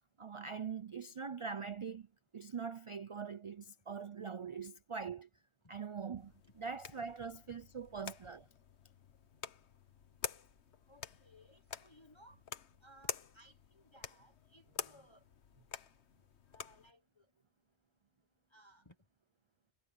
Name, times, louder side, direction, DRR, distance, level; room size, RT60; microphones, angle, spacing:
voice 1, 0.2-2.1 2.3-5.3 5.7-8.5, right 6 dB, 40° right, 0.4 m, -43 dB
sound 1, 6.2-16.9, left 7 dB, 75° left, 1.4 m, -48 dB
voice 2, 10.9-12.4 12.8-15.2 16.5-17.3 18.5-18.9, equal, 25° left, 1.3 m, -62 dB
omnidirectional pair, 1.1 m